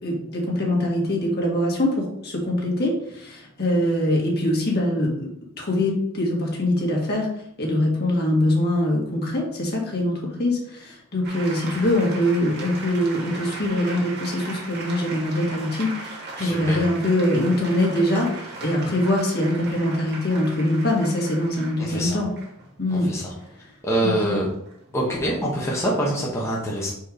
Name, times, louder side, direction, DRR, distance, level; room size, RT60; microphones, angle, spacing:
voice 1, 0.0-5.3 5.6-7.3 7.6-22.3 22.8-23.1 24.0-24.4, left 1 dB, 50° left, -2 dB, 1.9 m, -23 dB
sound 1, 11.2-25.7, right 3 dB, 50° right, 1.6 m, -38 dB
voice 2, 16.4-16.8 21.8-22.2 22.9-23.2 23.8-24.5 24.9-26.9, right 1 dB, 15° left, -5 dB, 1.1 m, -25 dB
4.7 x 4.6 x 5.0 m, 0.75 s
head